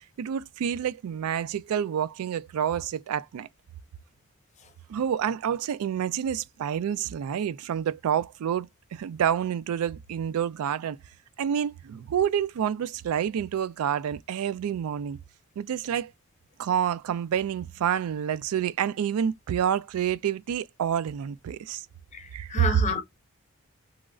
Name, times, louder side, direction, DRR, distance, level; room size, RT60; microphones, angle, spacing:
voice 1, 0.2-3.5 4.9-11.0 11.4-15.2 15.6-16.1 16.6-21.9 22.3-22.8, right 9 dB, 85° right, 0.3 m, -28 dB
voice 2, 22.1-23.0, left 4 dB, 30° left, 0.6 m, -30 dB
3.0 x 2.4 x 2.3 m
head